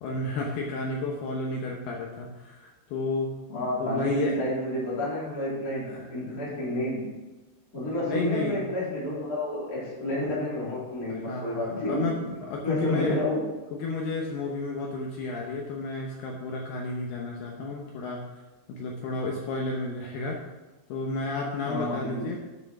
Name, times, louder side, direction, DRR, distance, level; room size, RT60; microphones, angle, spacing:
voice 1, 0.0-3.3 3.8-4.4 5.9-6.4 8.0-8.6 11.1-13.2 13.7-18.2 18.7-20.4 20.9-22.4, left 3 dB, 75° left, 0 dB, 2.5 m, -32 dB
voice 2, 3.5-7.1 7.7-12.1 12.6-13.4 21.6-22.3, left 1 dB, 20° left, -9 dB, 3.1 m, -30 dB
9.1 x 6.3 x 6.0 m, 1.1 s
omnidirectional pair, 5.7 m